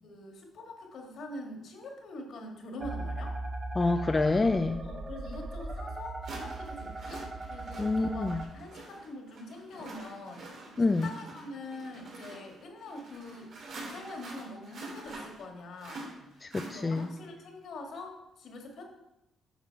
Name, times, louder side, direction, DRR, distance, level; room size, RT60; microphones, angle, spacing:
voice 1, 0.0-3.4 4.8-18.8, left 2 dB, 65° left, 2 dB, 1.9 m, -44 dB
sound 1, 2.8-8.4, right 2 dB, 30° right, 1.9 m, -38 dB
voice 2, 3.8-4.8 7.8-8.4 10.8-11.1 16.4-17.1, left 3 dB, 25° left, 7 dB, 0.5 m, -27 dB
sound 2, 5.3-5.4 6.2-17.3, right 2 dB, 65° right, 2.6 m, -46 dB
8.8 x 5.7 x 4.7 m, 0.90 s
cardioid pair, 90°, 0 cm